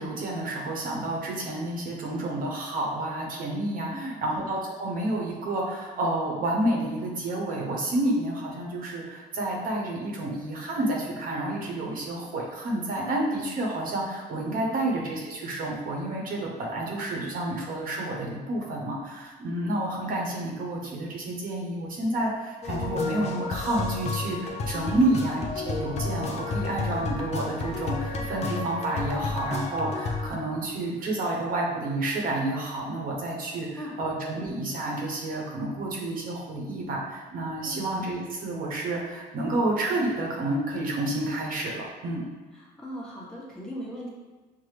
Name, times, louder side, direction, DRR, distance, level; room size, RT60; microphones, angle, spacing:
voice 1, 0.0-42.2, right 1 dB, 55° right, -2 dB, 0.9 m, -30 dB
voice 2, 3.9-4.3 14.7-14.9 24.9-25.2 33.8-34.0 37.6-37.9 42.5-44.1, equal, 5° left, -6 dB, 1.1 m, -38 dB
sound 1, 22.6-30.3, left 3 dB, 40° left, 0.6 m, -31 dB
5.7 x 2.0 x 3.2 m, 1.3 s
cardioid pair, 110°, 17 cm